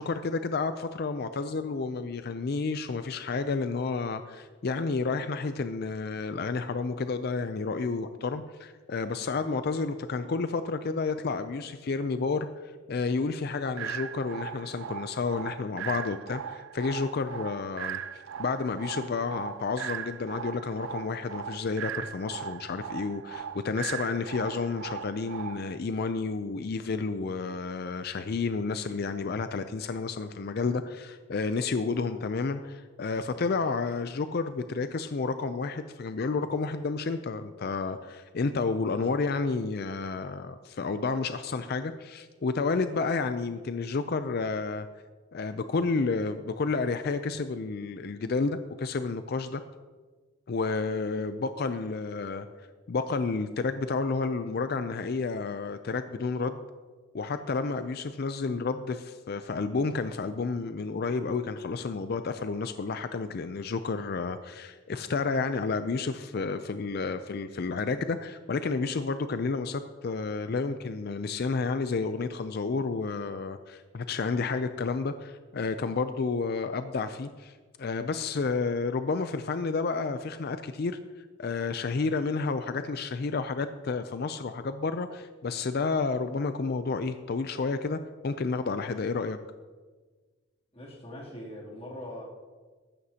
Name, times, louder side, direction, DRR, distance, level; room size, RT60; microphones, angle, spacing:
voice 1, 0.0-12.5 12.9-44.9 45.3-49.6 50.5-52.5 52.9-56.6 57.1-81.0 81.4-89.4, left 4 dB, 50° left, 10 dB, 0.4 m, -31 dB
sound 1, 13.8-25.8, right 9 dB, 65° right, 0.3 m, -39 dB
voice 2, 90.7-92.2, left 1 dB, 30° left, -5 dB, 2.9 m, -42 dB
14.5 x 13.0 x 2.8 m, 1.4 s
head